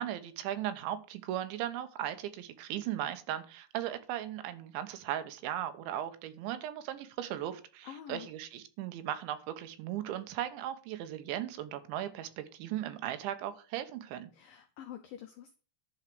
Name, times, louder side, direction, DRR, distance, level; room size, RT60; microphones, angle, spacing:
voice 1, 0.0-14.3, right 12 dB, 85° right, 10 dB, 3.4 m, -37 dB
voice 2, 7.8-8.3 14.3-15.6, left 10 dB, 85° left, 6 dB, 2.0 m, -46 dB
11.5 x 4.5 x 7.7 m, 0.38 s
omnidirectional pair, 5.2 m